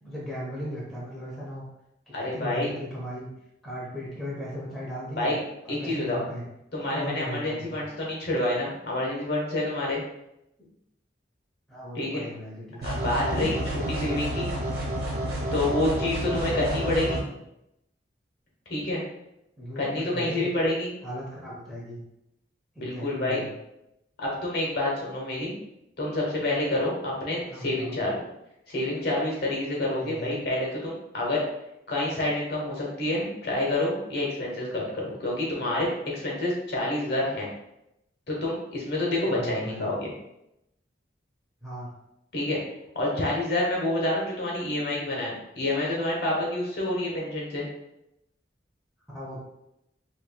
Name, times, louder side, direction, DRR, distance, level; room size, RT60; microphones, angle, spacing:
voice 1, 0.0-1.6 2.2-3.3 3.6-5.3 5.6-6.4 6.9-7.8 11.7-12.8 19.6-20.7 21.0-22.0 22.7-23.5 27.5-28.1 30.0-30.3 39.3-39.9 41.6-41.9 49.1-49.4, equal, ahead, -7 dB, 0.9 m, -37 dB
voice 2, 2.1-2.7 5.1-5.4 5.7-6.2 6.7-10.0 11.9-12.2 12.8-14.5 15.5-17.2 18.7-19.0 19.8-20.9 22.8-23.4 24.2-25.5 26.0-28.2 28.7-31.4 31.9-35.9 36.1-37.5 38.3-40.1 42.3-42.6 42.9-47.7, left 1 dB, 55° left, -4 dB, 1.1 m, -28 dB
sound 1, 12.8-17.2, right 1 dB, 55° right, 0.9 m, -30 dB
4.5 x 2.9 x 2.3 m, 0.85 s
head